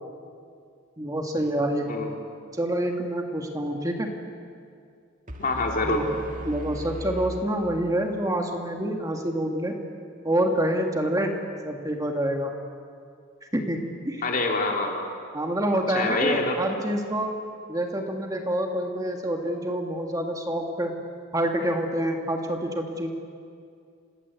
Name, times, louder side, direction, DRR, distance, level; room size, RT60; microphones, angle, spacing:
voice 1, 1.0-1.9 2.5-4.1 5.8-6.1 6.5-9.7 10.2-11.3 11.6-12.5 13.5-13.8 14.1-14.2 15.3-17.3 17.7-20.9 21.3-23.1, right 1 dB, 15° right, 2 dB, 1.9 m, -27 dB
sound 1, 5.3-8.3, left 1 dB, 40° right, 2.0 m, -38 dB
voice 2, 5.4-6.1 14.2-15.1 15.9-16.6, left 2 dB, 45° left, 1 dB, 3.6 m, -26 dB
28.5 x 19.5 x 8.4 m, 2.3 s
head